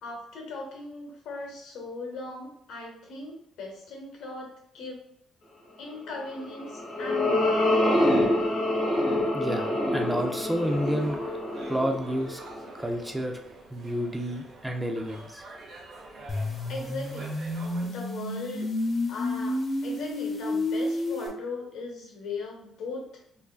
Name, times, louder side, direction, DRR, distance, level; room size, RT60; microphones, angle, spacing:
voice 1, 0.0-5.0 5.8-8.3 16.7-17.4 17.8-18.7 19.1-23.2, left 3 dB, 80° left, 0 dB, 1.0 m, -39 dB
sound 1, 6.4-12.9, left 1 dB, 60° left, 1.3 m, -26 dB
voice 2, 9.3-11.2 11.7-12.4 12.8-13.4 13.7-15.4, equal, 10° right, 3 dB, 0.5 m, -30 dB
sound 2, 10.1-17.9, right 2 dB, 60° right, 0.9 m, -47 dB
sound 3, 16.3-21.3, left 2 dB, 45° left, 0.9 m, -30 dB
4.4 x 2.7 x 2.4 m, 0.71 s
cardioid pair, 90°, 0 cm